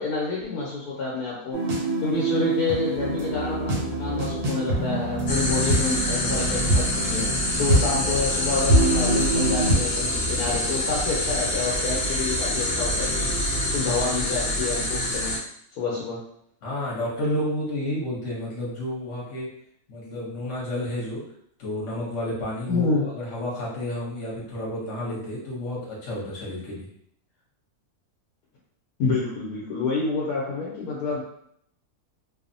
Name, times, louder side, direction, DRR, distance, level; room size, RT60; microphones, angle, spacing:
voice 1, 0.0-1.6 2.0-7.3 7.6-13.3 13.7-15.3 15.8-16.2 22.6-23.1 29.0-31.2, left 4 dB, 90° left, -5 dB, 1.2 m, -28 dB
sound 1, 1.5-9.7, right 1 dB, 90° right, 1.3 m, -25 dB
sound 2, 2.9-13.8, left 1 dB, 55° right, 0.6 m, -38 dB
sound 3, 5.3-15.4, left 1 dB, 70° left, 0.4 m, -26 dB
voice 2, 16.6-19.5 19.9-21.2 21.6-26.9, left 1 dB, 55° left, -5 dB, 1.1 m, -31 dB
2.9 x 2.0 x 2.6 m, 0.69 s
omnidirectional pair, 1.6 m